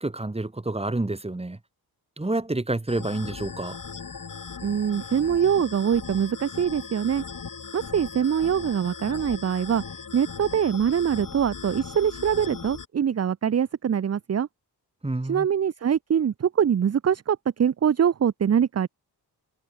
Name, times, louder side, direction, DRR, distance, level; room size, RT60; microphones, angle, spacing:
voice 1, 0.0-1.6 2.2-3.8 15.0-15.5, right 2 dB, 15° right, 2.5 m, -28 dB
sound 1, 2.9-12.9, left 5 dB, 50° left, 5.7 m, -38 dB
voice 2, 4.6-7.2 7.7-9.8 10.1-14.5 15.3-18.9, right 8 dB, 40° right, 0.6 m, -23 dB
cardioid pair, 85°, 40 cm